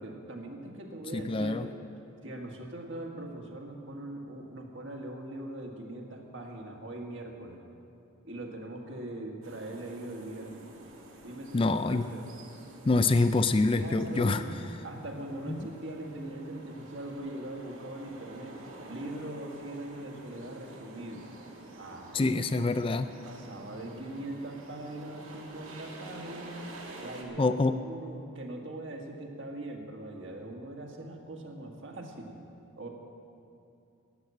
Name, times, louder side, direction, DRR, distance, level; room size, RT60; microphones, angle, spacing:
voice 1, 0.0-1.7 2.2-7.6 8.2-10.7 11.2-12.2 13.7-14.5 14.8-21.2 21.7-22.7 23.2-26.6 27.0-32.4 32.8-32.9, right 1 dB, 60° right, 1 dB, 1.8 m, -41 dB
voice 2, 1.1-1.7 11.5-12.1 12.9-14.4 22.1-23.1 27.4-27.8, left 3 dB, 25° left, 10 dB, 0.3 m, -25 dB
sound 1, 9.4-27.2, right 2 dB, 75° right, 2.0 m, -49 dB
12.5 x 10.0 x 8.5 m, 2.6 s
head